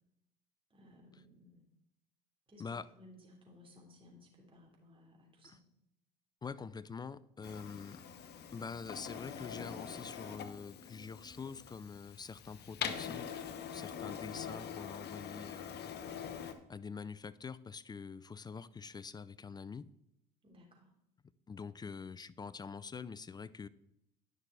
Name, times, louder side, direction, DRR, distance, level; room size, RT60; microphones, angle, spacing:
voice 1, 0.7-1.6 2.5-2.6 2.9-5.6 20.4-20.9, left 1 dB, 25° right, -1 dB, 3.2 m, -59 dB
voice 2, 6.4-8.0 8.5-13.4 13.7-15.9 16.7-19.9 21.5-23.7, left 5 dB, 20° left, 17 dB, 0.4 m, -45 dB
Printer, 7.4-16.5, left 8 dB, 50° left, 1.0 m, -44 dB
10.0 x 6.1 x 4.0 m, 0.81 s
hypercardioid pair, 70°, 21 cm